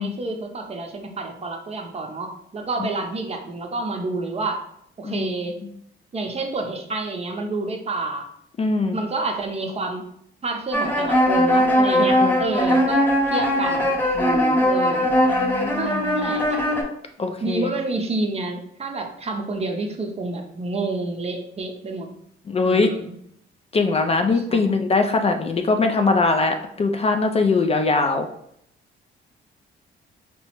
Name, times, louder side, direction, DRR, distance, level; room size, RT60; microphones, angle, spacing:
voice 1, 0.0-4.6 5.0-5.6 6.1-8.3 8.9-10.0 10.4-15.1 15.8-16.6 17.4-22.1 22.6-23.1 24.3-24.7, right 3 dB, 30° right, 3 dB, 0.7 m, -29 dB
voice 2, 8.6-9.0 12.0-12.4 15.3-16.3 17.2-17.7 22.5-22.9 23.7-28.3, left 3 dB, 30° left, 5 dB, 0.3 m, -22 dB
sound 1, 10.7-16.8, equal, 10° left, 0.8 m, -20 dB
4.6 x 2.0 x 2.9 m, 0.69 s
cardioid pair, 90°, 20 cm